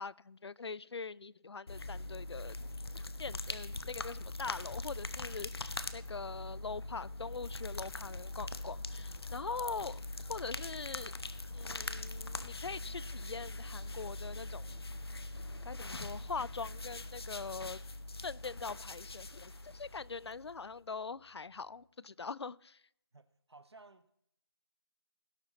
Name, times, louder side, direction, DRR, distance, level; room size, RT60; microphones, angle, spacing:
voice 1, 0.0-2.6 3.2-10.0 10.3-11.1 11.5-14.7 15.6-17.8 18.2-22.8, left 4 dB, 90° left, 22 dB, 0.4 m, -43 dB
sound 1, 1.7-20.6, left 2 dB, 70° left, 0.8 m, -42 dB
sound 2, 12.3-17.2, right 4 dB, 15° right, 0.8 m, -63 dB
sound 3, 12.8-21.9, left 3 dB, 30° left, 1.8 m, -70 dB
voice 2, 23.1-24.1, right 3 dB, 85° right, 12 dB, 1.1 m, -57 dB
17.0 x 8.3 x 3.0 m, 0.71 s
figure-of-eight pair, 170°, 13 cm